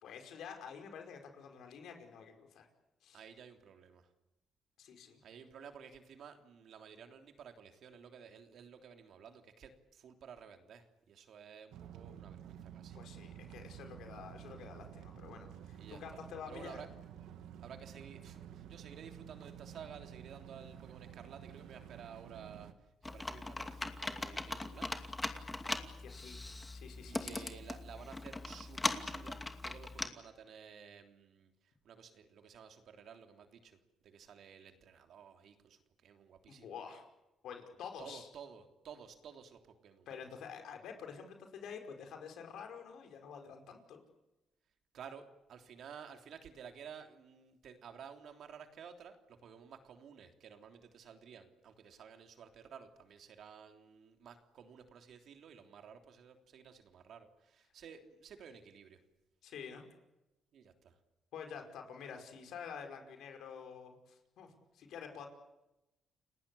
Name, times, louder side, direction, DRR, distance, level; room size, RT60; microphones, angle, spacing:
voice 1, 0.0-2.7 3.0-3.2 4.8-5.2 12.9-16.8 25.8-26.4 26.7-27.4 36.5-37.0 37.4-38.3 40.1-44.0 59.4-59.8 61.3-65.3, left 7 dB, 75° left, 5 dB, 5.1 m, -48 dB
voice 2, 3.1-4.1 5.2-13.0 15.8-16.2 16.5-16.9 17.6-25.1 27.1-36.8 38.0-40.1 44.9-59.0 60.5-61.0, right 7 dB, 70° right, 5 dB, 3.3 m, -53 dB
sound 1, 11.7-22.7, right 10 dB, 85° right, 1.8 m, -51 dB
Computer keyboard, 23.0-30.1, left 2 dB, 15° left, 2.5 m, -40 dB
30.0 x 19.0 x 8.6 m, 0.94 s
cardioid pair, 90°, 0 cm